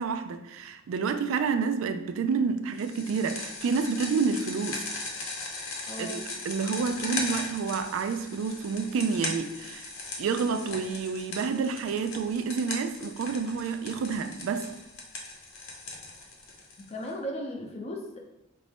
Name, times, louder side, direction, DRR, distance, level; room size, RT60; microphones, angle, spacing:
voice 1, 0.0-4.8 6.0-6.2 6.5-9.9 10.2-14.7, right 5 dB, 65° right, 8 dB, 0.3 m, -29 dB
sound 1, 2.8-17.1, left 3 dB, 70° left, 0.8 m, -38 dB
voice 2, 5.9-6.3 16.9-18.2, equal, 30° left, 1 dB, 0.6 m, -36 dB
4.3 x 2.5 x 3.4 m, 0.88 s
head